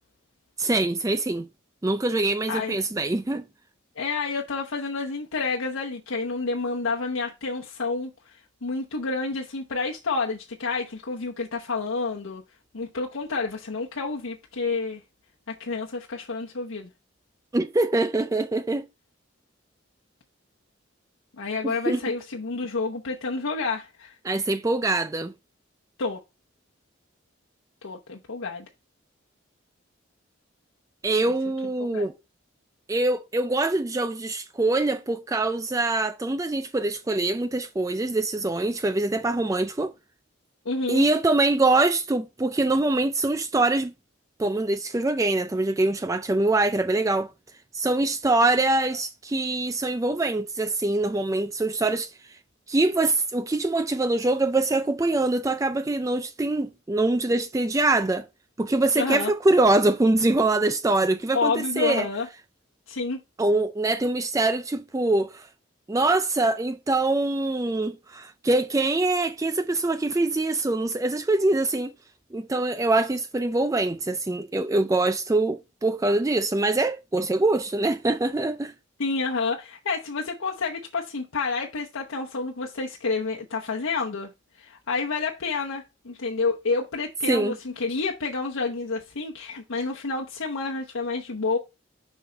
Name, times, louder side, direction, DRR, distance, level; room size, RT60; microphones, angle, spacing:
voice 1, 0.6-1.5 1.8-3.4 17.5-18.8 21.6-22.0 24.2-25.3 31.0-32.1 32.9-39.9 40.9-43.9 44.4-47.3 47.7-52.4 52.7-58.3 58.6-62.1 63.4-65.5 65.9-71.9 72.3-78.7 87.3-87.6, right 2 dB, 15° right, 0.3 m, -24 dB
voice 2, 4.0-8.3 8.6-12.4 12.7-15.0 15.5-16.9 21.4-24.2 26.0-26.2 27.8-28.7 31.2-31.3 31.8-32.1 40.6-41.1 58.9-59.3 61.3-62.3 62.9-63.2 79.0-84.3 84.6-91.6, left 4 dB, 90° left, 0.9 m, -29 dB
6.5 x 5.5 x 3.3 m
head